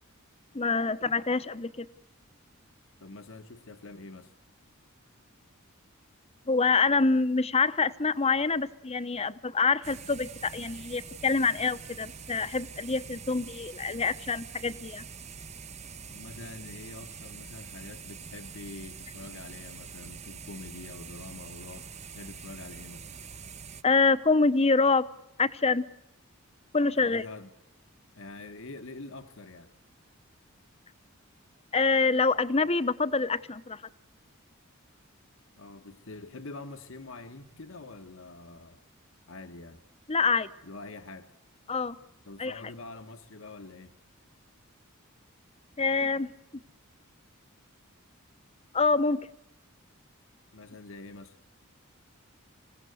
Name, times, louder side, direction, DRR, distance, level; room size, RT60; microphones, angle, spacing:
voice 1, 0.5-1.9 6.5-15.1 23.8-25.1 25.4-25.9 26.7-27.2 31.7-33.8 40.1-40.5 41.7-42.0 42.4-42.5 45.8-46.3 48.7-49.3, left 4 dB, 30° left, 0.8 m, -26 dB
voice 2, 3.0-4.3 16.1-23.1 27.0-27.5 28.2-29.7 35.6-38.8 39.3-39.8 40.6-41.3 42.2-43.9 50.5-51.4, left 3 dB, 65° left, 1.3 m, -45 dB
sound 1, 9.8-23.8, right 6 dB, 30° right, 0.8 m, -45 dB
26.0 x 17.0 x 7.9 m
head